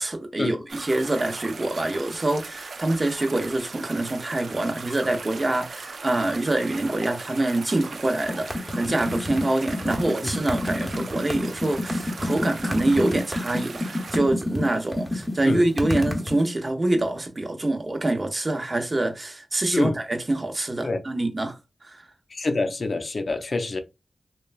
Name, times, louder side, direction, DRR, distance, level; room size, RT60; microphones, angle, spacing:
voice 1, 0.0-22.1, right 2 dB, 40° right, 0.6 m, -25 dB
sound 1, 0.7-14.2, right 4 dB, 80° right, 0.3 m, -39 dB
sound 2, 8.3-16.4, left 1 dB, 5° right, 0.8 m, -28 dB
voice 2, 22.3-23.8, left 3 dB, 60° left, 0.4 m, -26 dB
3.0 x 2.2 x 2.3 m
cardioid pair, 55°, 0 cm